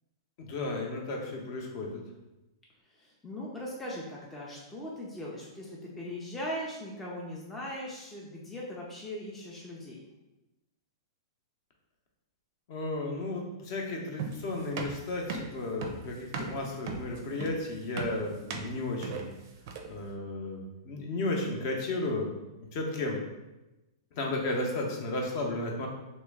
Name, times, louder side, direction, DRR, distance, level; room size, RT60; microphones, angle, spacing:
voice 1, 0.4-2.0 12.7-19.3 19.9-22.3 22.7-23.2 24.1-25.9, left 2 dB, 45° left, 0 dB, 0.7 m, -33 dB
voice 2, 2.9-10.0, left 1 dB, 5° left, -4 dB, 0.4 m, -39 dB
sound 1, 14.2-20.0, right 4 dB, 50° right, 0.5 m, -38 dB
3.1 x 2.9 x 3.5 m, 1.0 s
hypercardioid pair, 155°, 2 cm